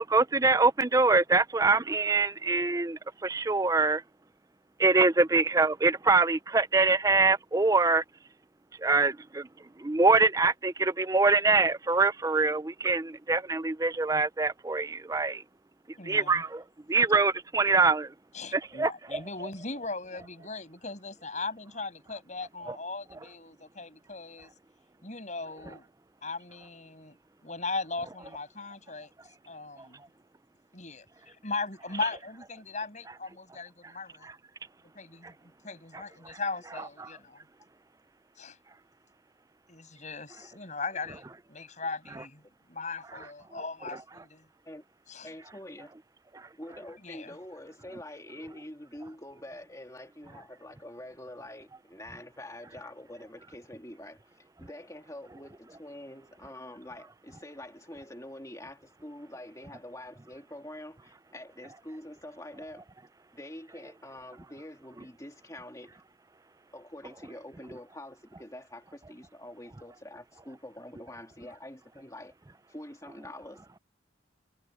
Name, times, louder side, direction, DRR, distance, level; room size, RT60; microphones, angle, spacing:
voice 1, 0.0-4.0 4.8-8.0 8.8-9.5 9.8-15.4 16.0-16.6 16.9-18.1 18.5-19.2 22.7-22.8 29.8-29.9 34.2-34.3 36.2-36.4 37.0-37.1 46.3-46.5, right 3 dB, 20° right, 0.5 m, -24 dB
voice 2, 16.0-16.4 18.3-24.5 25.0-25.9 26.2-27.2 27.4-29.1 29.5-30.0 30.7-34.3 34.9-35.3 35.6-37.4 38.4-38.6 39.7-42.4 42.7-44.5 45.1-45.3 47.0-47.3, left 3 dB, 40° left, 7.7 m, -38 dB
voice 3, 45.2-45.9 46.6-62.9 63.3-66.0 66.7-72.3 72.7-73.6, left 1 dB, 15° left, 2.4 m, -45 dB
head